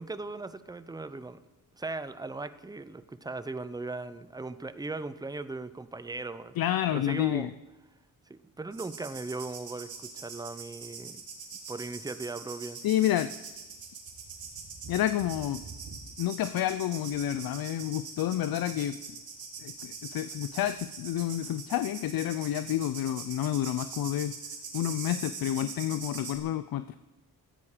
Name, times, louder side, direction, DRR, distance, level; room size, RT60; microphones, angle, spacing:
voice 1, 0.0-1.4 1.7-6.6 6.9-7.5 8.3-11.2 11.7-12.8, right 3 dB, 10° right, 13 dB, 0.7 m, -38 dB
voice 2, 6.6-7.5 12.8-13.3 14.9-15.6 16.2-19.0 19.6-24.3 24.7-27.0, left 12 dB, 70° left, 13 dB, 0.6 m, -29 dB
sound 1, 8.7-26.4, right 5 dB, 70° right, 3.1 m, -43 dB
16.0 x 14.0 x 5.0 m, 1.1 s
cardioid pair, 120°, 37 cm